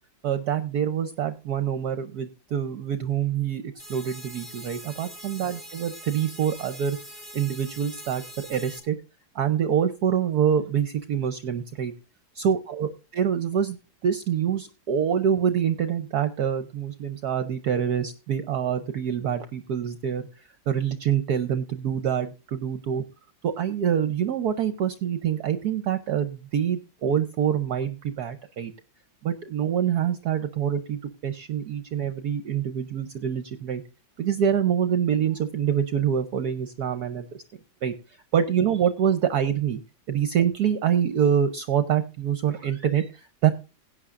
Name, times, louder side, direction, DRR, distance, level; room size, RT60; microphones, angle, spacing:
voice 1, 0.2-7.0 7.3-9.0 9.3-11.9 12.3-13.8 14.0-20.3 20.7-23.0 23.4-28.7 29.2-33.8 34.2-37.2 37.8-37.9 38.3-39.8 40.1-43.5, right 8 dB, 60° right, 10 dB, 1.2 m, -25 dB
sound 1, 3.8-8.8, equal, 30° left, 3.9 m, -43 dB
17.0 x 9.3 x 2.5 m, 0.31 s
omnidirectional pair, 2.1 m